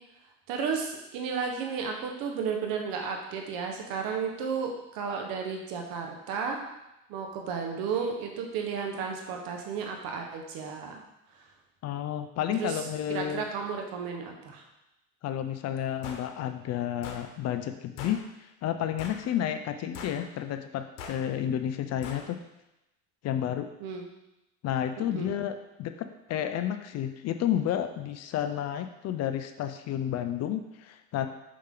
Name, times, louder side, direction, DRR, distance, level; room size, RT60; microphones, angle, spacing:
voice 1, 0.5-6.6 7.1-11.0 12.6-12.8 13.1-14.6 23.8-24.0 25.1-25.3, right 6 dB, 65° right, 2 dB, 1.5 m, -33 dB
voice 2, 11.8-13.5 15.2-18.2 18.6-22.4 23.2-23.7 24.6-31.3, left 10 dB, 45° left, 8 dB, 0.6 m, -31 dB
sound 1, 16.0-16.3 17.0-17.2 18.0-18.2 19.0-19.3 19.9-20.2 21.0-21.2 22.0-22.3, left 5 dB, 80° left, 1.3 m, -41 dB
6.3 x 5.7 x 3.9 m, 0.92 s
supercardioid pair, 120°, 37 cm